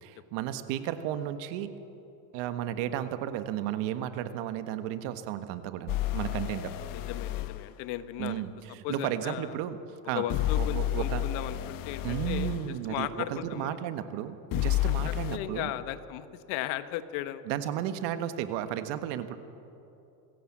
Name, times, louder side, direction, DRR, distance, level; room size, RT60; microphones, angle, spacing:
voice 1, 0.0-1.7 2.3-6.7 8.2-9.8 10.0-10.2 10.6-11.2 12.0-15.7 17.5-19.4, right 11 dB, 60° right, 9 dB, 1.5 m, -33 dB
sound 1, 5.9-7.6 10.3-12.6 14.5-15.4, left 13 dB, 45° left, 1.0 m, -30 dB
voice 2, 6.0-6.5 6.9-8.4 8.8-9.5 10.1-12.5 12.9-13.8 15.0-17.4, left 13 dB, 60° left, 12 dB, 1.3 m, -36 dB
25.5 x 16.0 x 7.5 m, 2.8 s
supercardioid pair, 130°, 49 cm